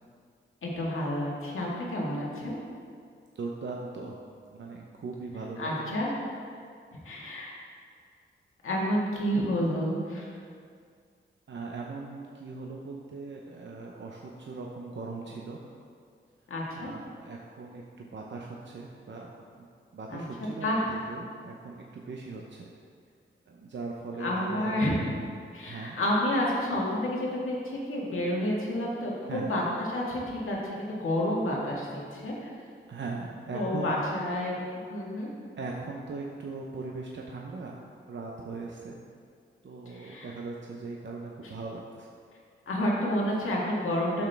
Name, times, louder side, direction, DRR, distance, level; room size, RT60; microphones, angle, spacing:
voice 1, 0.6-2.6 5.6-6.1 7.0-7.5 8.6-10.3 16.5-16.9 20.1-20.2 20.6-20.8 24.2-25.0 25.5-32.5 33.5-34.6 34.9-35.3 39.9-40.3 42.7-44.2, left 1 dB, 80° left, -3 dB, 1.7 m, -29 dB
voice 2, 3.3-4.2 4.5-6.0 11.5-15.6 16.7-19.7 19.9-22.7 23.5-24.8 25.6-26.0 29.3-29.5 32.9-34.0 35.6-37.8 38.1-39.0 39.6-42.1, right 3 dB, 60° right, -1 dB, 0.8 m, -39 dB
8.6 x 6.1 x 3.4 m, 2.2 s
cardioid pair, 50°, 21 cm